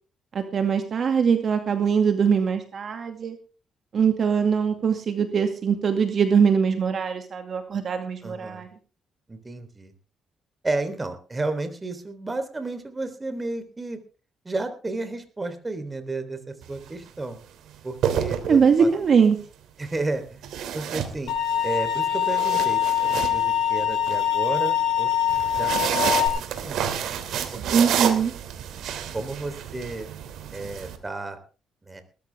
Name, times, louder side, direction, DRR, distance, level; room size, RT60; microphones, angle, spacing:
voice 1, 0.3-3.4 3.9-8.7 18.5-19.4 27.7-28.3, right 6 dB, 55° right, 6 dB, 2.3 m, -22 dB
voice 2, 8.2-8.6 9.3-9.9 10.6-14.0 14.5-17.4 17.8-18.9 19.8-21.3 21.6-25.1 25.5-27.0 27.5-28.1 29.1-30.1 30.5-31.4 31.9-32.0, right 2 dB, 20° right, 8 dB, 3.6 m, -32 dB
sound 1, 16.6-16.9 17.8-19.0 20.4-21.6 22.1-24.2 25.3-31.0, right 9 dB, 80° right, 2.9 m, -29 dB
sound 2, 21.3-26.3, left 9 dB, 75° left, 5.2 m, -23 dB
19.5 x 14.0 x 3.6 m, 0.35 s
cardioid pair, 90°, 0 cm